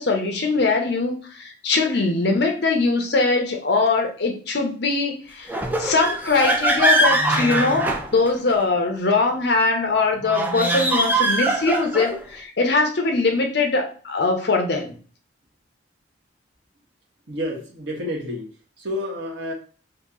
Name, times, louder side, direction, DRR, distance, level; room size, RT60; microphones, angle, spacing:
voice 1, 0.0-14.9, left 3 dB, 60° left, 3 dB, 0.7 m, -22 dB
sound 1, 5.5-8.6 10.2-12.2, right 2 dB, 10° right, 0.3 m, -22 dB
voice 2, 17.3-19.5, left 1 dB, 65° right, -1 dB, 1.1 m, -30 dB
2.9 x 2.7 x 3.7 m, 0.41 s
head